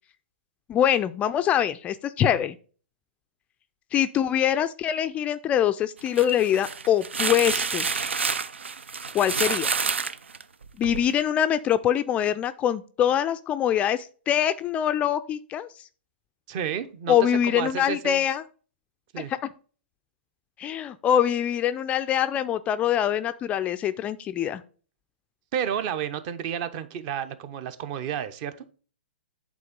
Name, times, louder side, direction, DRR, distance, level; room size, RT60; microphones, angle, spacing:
voice 1, 0.7-2.6 3.9-8.1 9.1-9.7 10.8-15.9 17.1-18.4 19.2-19.4 20.6-24.6, left 10 dB, 20° left, 12 dB, 0.3 m, -24 dB
sound 1, 6.0-11.1, right 5 dB, 85° right, 0.5 m, -28 dB
voice 2, 16.5-18.2 19.1-19.3 25.5-28.5, right 9 dB, 40° right, 13 dB, 0.8 m, -31 dB
8.4 x 3.7 x 5.1 m, 0.39 s
hypercardioid pair, 125°, 6 cm